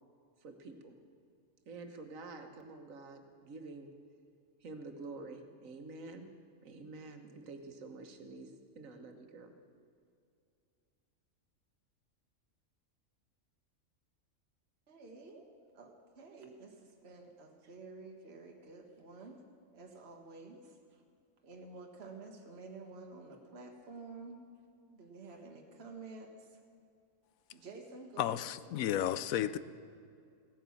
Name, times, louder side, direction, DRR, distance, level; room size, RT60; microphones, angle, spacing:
voice 1, 0.4-1.0 1.7-3.9 4.6-6.3 6.6-9.5, right 3 dB, 75° right, 6 dB, 1.5 m, -48 dB
voice 2, 14.9-19.4 19.7-21.0 21.4-24.4 24.9-26.6 27.5-28.4, right 3 dB, 50° right, 2 dB, 1.4 m, -51 dB
voice 3, 28.2-29.6, left 11 dB, 85° left, 15 dB, 1.0 m, -33 dB
16.0 x 9.0 x 7.1 m, 2.4 s
omnidirectional pair, 1.4 m